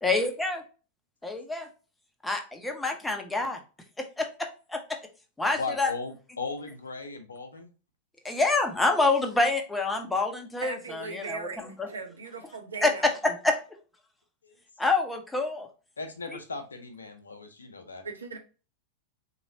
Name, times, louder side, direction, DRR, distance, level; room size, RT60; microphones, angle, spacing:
voice 1, 0.0-0.6 1.2-1.7 2.2-3.6 4.0-5.0 5.4-5.9 8.2-11.9 12.8-13.6 14.8-15.7, left 3 dB, 10° left, 4 dB, 0.8 m, -27 dB
voice 2, 5.6-7.7 14.4-14.6 16.0-18.0, left 4 dB, 75° left, 7 dB, 0.7 m, -37 dB
voice 3, 10.6-13.0 18.0-18.4, right 4 dB, 75° right, 4 dB, 0.8 m, -38 dB
3.9 x 3.0 x 2.7 m, 0.34 s
figure-of-eight pair, 90°, 0 cm